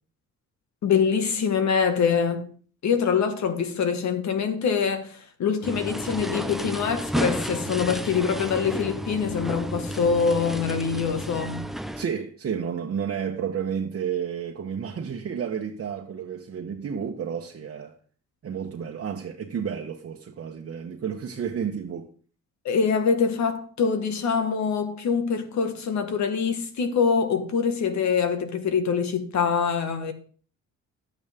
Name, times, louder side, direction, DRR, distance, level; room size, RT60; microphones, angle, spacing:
voice 1, 0.8-2.5 2.8-11.6 22.7-30.1, left 6 dB, 65° left, 1.8 m, -24 dB
sound 1, 5.6-12.0, equal, ahead, 0.6 m, -31 dB
voice 2, 12.0-18.0 18.4-22.1, right 7 dB, 50° right, 1.2 m, -31 dB
11.5 x 8.8 x 3.6 m
cardioid pair, 90°, 30 cm